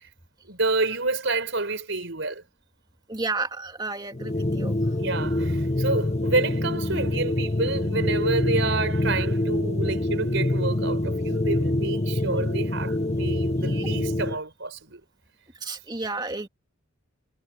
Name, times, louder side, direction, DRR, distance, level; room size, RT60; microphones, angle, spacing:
voice 1, 0.4-2.4 5.0-15.0, right 3 dB, 60° right, 5.9 m, -28 dB
voice 2, 3.1-4.7 15.6-16.5, right 3 dB, 20° right, 2.8 m, -31 dB
sound 1, 4.1-14.4, left 1 dB, 30° left, 1.0 m, -25 dB
head